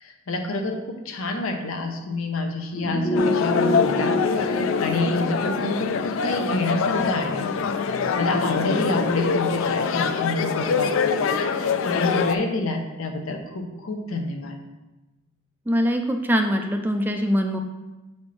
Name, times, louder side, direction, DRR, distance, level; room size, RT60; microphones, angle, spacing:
voice 1, 0.0-7.4 7.8-14.6, left 2 dB, 90° left, 4 dB, 0.8 m, -28 dB
sound 1, 2.7-7.9 8.2-8.3, left 1 dB, 50° left, 1.1 m, -28 dB
sound 2, 3.1-12.3, left 5 dB, 70° left, 0.4 m, -24 dB
voice 2, 15.7-17.6, equal, 10° right, 5 dB, 0.3 m, -23 dB
7.0 x 4.3 x 3.1 m, 1.1 s
head